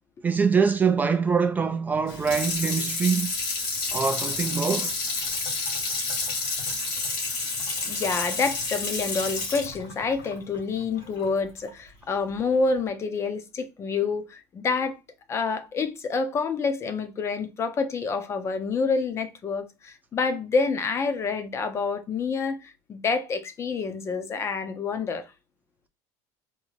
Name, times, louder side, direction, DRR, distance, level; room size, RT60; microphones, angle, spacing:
voice 1, 0.2-3.3 3.9-4.9, right 5 dB, 20° right, 0.3 m, -24 dB
Water tap faucet / Sink (filling or washing), 2.1-11.3 11.7-11.8, left 3 dB, 80° left, 2.0 m, -30 dB
voice 2, 7.8-15.0 15.3-25.3, left 4 dB, 30° left, 0.6 m, -28 dB
3.6 x 2.1 x 3.1 m
supercardioid pair, 115°, 9 cm